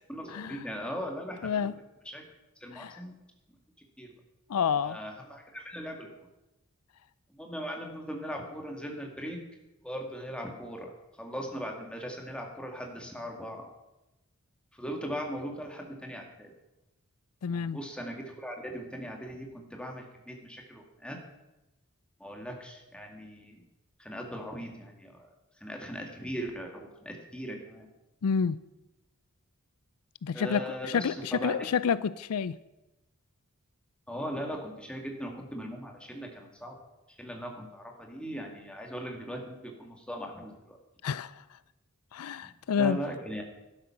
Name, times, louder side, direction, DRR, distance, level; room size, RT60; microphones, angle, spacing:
voice 1, 0.1-1.7 2.1-2.2 2.6-3.1 4.0-4.1 4.8-6.1 7.3-9.4 9.8-10.9 11.2-13.6 14.7-16.5 17.5-21.2 22.2-23.6 24.0-25.3 25.6-27.9 30.3-31.7 34.1-36.7 37.1-40.8 42.7-43.4, equal, 5° left, 2.0 m, -39 dB
voice 2, 1.4-1.7 2.7-3.0 4.5-5.0 17.4-17.8 28.2-28.6 30.2-32.6 41.0-41.3 42.1-43.0, left 6 dB, 80° left, 0.4 m, -29 dB
12.5 x 11.5 x 5.9 m
head